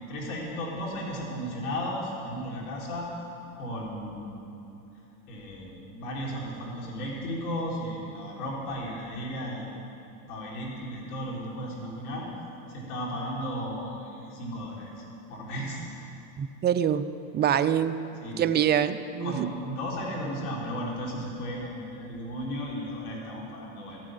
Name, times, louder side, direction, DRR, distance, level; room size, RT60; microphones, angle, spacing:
voice 1, 0.0-3.1 3.5-4.4 5.3-9.7 10.3-12.3 12.7-15.0 15.3-15.8 18.2-18.4 19.2-24.0, equal, 80° left, -3 dB, 3.8 m, -35 dB
voice 2, 16.4-17.1 17.3-18.0 18.4-19.5, right 9 dB, 25° right, 11 dB, 0.4 m, -25 dB
13.5 x 7.7 x 9.0 m, 2.8 s
supercardioid pair, 110°, 43 cm